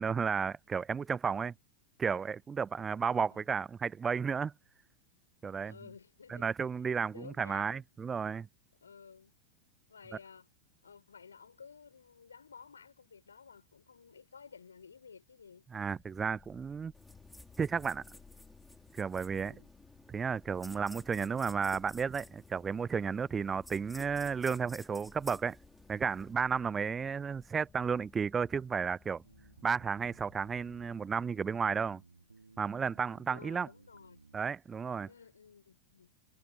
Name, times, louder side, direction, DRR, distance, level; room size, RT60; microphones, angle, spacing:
voice 1, 0.0-1.5 2.0-4.5 5.4-5.7 6.3-8.5 15.7-16.9 17.6-18.0 18.9-19.5 20.1-25.6 25.9-29.2 29.6-32.0 32.6-33.7 34.3-35.1, right 6 dB, 20° right, 0.4 m, -33 dB
voice 2, 3.0-3.5 5.6-6.5 7.1-7.8 8.8-9.3 9.9-10.5 10.8-15.6 19.3-19.7 33.3-34.2 35.1-36.1, left 6 dB, 70° left, 5.1 m, -54 dB
sound 1, 15.9-30.9, left 6 dB, 20° left, 5.3 m, -60 dB
sound 2, 16.9-26.3, left 1 dB, 5° left, 2.4 m, -55 dB
sound 3, 29.2-34.5, right 4 dB, 80° right, 2.4 m, -60 dB
figure-of-eight pair, 90°, 0 cm